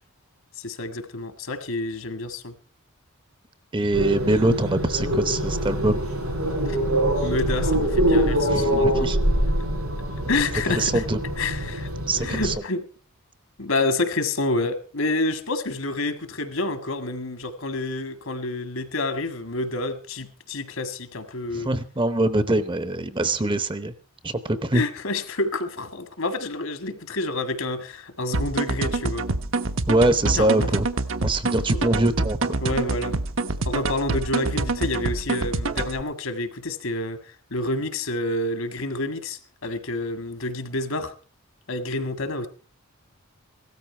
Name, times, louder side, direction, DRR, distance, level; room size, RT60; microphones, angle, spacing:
voice 1, 0.6-2.5 6.7-6.8 7.2-9.1 10.3-11.0 11.4-11.9 12.2-12.8 13.6-21.7 24.7-29.3 30.4-30.6 31.7-31.9 32.6-33.2 33.7-37.2 37.5-41.1 41.7-42.5, left 2 dB, 65° left, 10 dB, 1.8 m, -28 dB
voice 2, 3.7-6.0 8.5-9.2 10.7-11.2 12.1-12.5 21.5-23.9 24.2-24.8 29.9-30.9 31.2-32.6, right 2 dB, 20° right, 13 dB, 0.8 m, -23 dB
sound 1, 3.9-12.6, equal, 85° right, 7.9 m, -24 dB
sound 2, 28.3-36.0, right 3 dB, 60° right, 1.0 m, -26 dB
17.0 x 13.5 x 4.4 m, 0.36 s
head